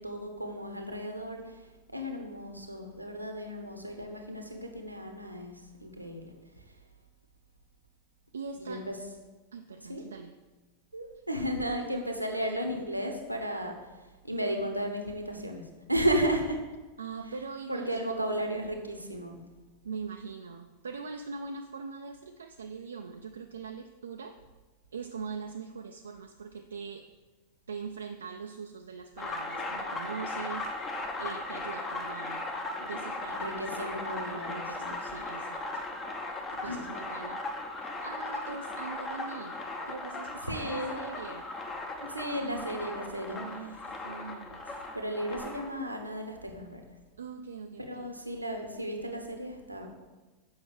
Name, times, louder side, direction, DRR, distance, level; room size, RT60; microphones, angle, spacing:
voice 1, 0.0-6.7 8.5-9.0 9.9-10.0 10.9-16.6 17.7-19.4 33.3-35.0 36.6-36.9 40.5-41.0 42.0-43.4 44.9-46.8 47.9-50.0, equal, 85° right, 4 dB, 0.9 m, -34 dB
voice 2, 8.3-8.8 9.5-10.3 11.8-12.0 17.0-18.5 19.8-24.4 24.9-27.1 27.7-32.5 32.8-35.8 36.6-37.4 37.8-39.6 39.9-41.5 42.4-42.8 43.3-44.9 47.2-48.1, right 5 dB, 70° right, 5 dB, 0.4 m, -42 dB
sound 1, 29.2-45.7, left 2 dB, 25° left, 0.9 m, -37 dB
7.3 x 5.5 x 4.8 m, 1.2 s
figure-of-eight pair, 90°, 0 cm